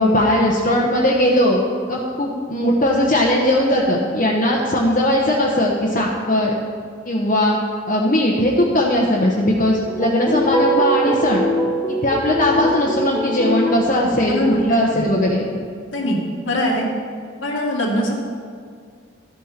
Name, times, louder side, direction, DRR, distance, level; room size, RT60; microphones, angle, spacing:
voice 1, 0.0-1.6 1.9-6.5 7.0-7.6 7.9-11.4 11.9-15.5, left 1 dB, 45° left, -4 dB, 1.1 m, -18 dB
sound 1, 9.9-14.0, right 1 dB, 10° left, 0.9 m, -22 dB
voice 2, 14.3-14.6 14.9-15.0 15.9-16.2 16.4-16.9 17.4-18.1, left 1 dB, 90° left, -2 dB, 2.1 m, -21 dB
13.0 x 8.8 x 4.4 m, 2.1 s
head